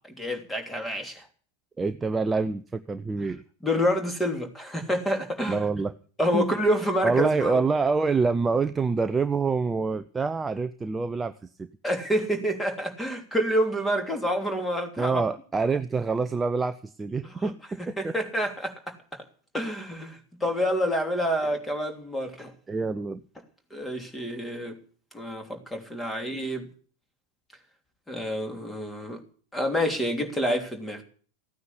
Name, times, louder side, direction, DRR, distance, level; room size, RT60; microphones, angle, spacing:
voice 1, 0.2-1.2 3.6-5.6 6.2-7.6 11.8-15.2 17.2-17.5 18.0-18.9 19.5-22.5 23.7-24.8 25.1-26.7 28.1-29.2 29.5-31.0, equal, 10° left, 5 dB, 3.2 m, -28 dB
voice 2, 1.8-3.4 5.5-5.9 6.3-6.5 7.0-11.3 11.6-11.7 15.0-18.1 22.7-23.2, right 4 dB, 15° right, 11 dB, 0.7 m, -26 dB
15.5 x 9.5 x 8.6 m, 0.43 s
figure-of-eight pair, 90°, 0 cm